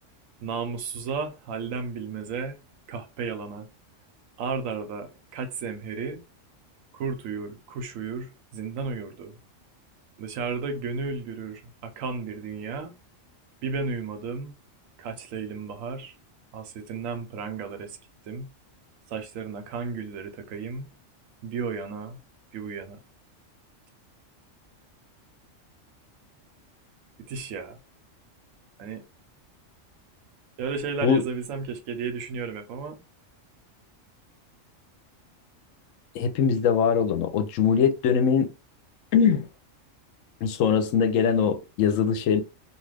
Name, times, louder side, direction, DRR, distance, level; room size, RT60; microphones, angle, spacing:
voice 1, 0.4-2.6 2.9-3.7 4.4-6.2 6.9-9.4 10.2-12.9 13.6-14.6 15.0-16.2 16.5-18.0 18.2-18.5 19.1-20.9 21.4-22.2 22.5-23.0 27.2-27.8 28.8-29.1 30.6-33.0, right 5 dB, 85° right, 1.1 m, -33 dB
voice 2, 36.1-38.5 39.1-39.5 40.4-42.4, left 7 dB, 80° left, 0.9 m, -22 dB
2.5 x 2.3 x 3.3 m
omnidirectional pair, 1.3 m